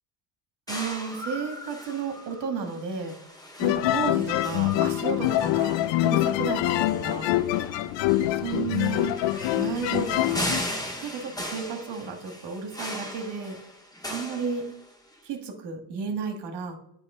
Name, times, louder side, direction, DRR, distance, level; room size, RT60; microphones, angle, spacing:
sound 1, 0.7-15.1, left 1 dB, 10° left, 1.5 m, -38 dB
voice 1, 0.7-3.1 3.6-7.3 8.3-9.2 9.5-10.6 11.0-13.6 14.1-14.7 15.2-16.8, right 5 dB, 60° right, 5 dB, 1.6 m, -33 dB
sound 2, 3.6-10.6, left 14 dB, 70° left, 0.5 m, -25 dB
8.3 x 3.2 x 5.4 m, 0.79 s
supercardioid pair, 85°, 46 cm